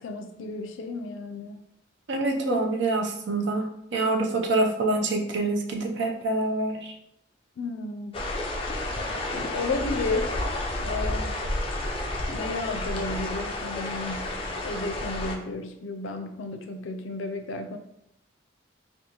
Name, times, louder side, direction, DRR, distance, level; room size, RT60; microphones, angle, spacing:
voice 1, 0.0-1.6 7.6-8.2 9.3-10.4 10.8-11.4 12.3-14.4 14.6-17.8, left 3 dB, 85° left, 6 dB, 0.4 m, -33 dB
voice 2, 2.1-6.9, right 2 dB, 70° right, 3 dB, 0.5 m, -26 dB
sound 1, 8.1-15.4, left 1 dB, 30° left, 0.4 m, -31 dB
2.9 x 2.3 x 3.8 m, 0.79 s
head